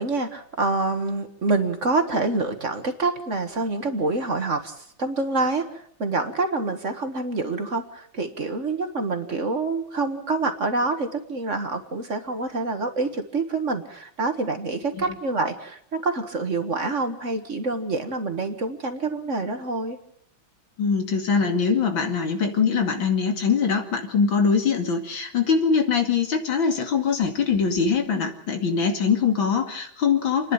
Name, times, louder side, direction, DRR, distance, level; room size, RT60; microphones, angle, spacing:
voice 1, 0.0-20.0, right 3 dB, 40° right, 7 dB, 1.7 m, -26 dB
voice 2, 20.8-30.5, left 5 dB, 75° left, 5 dB, 3.1 m, -22 dB
29.0 x 10.5 x 8.7 m, 0.67 s
omnidirectional pair, 2.1 m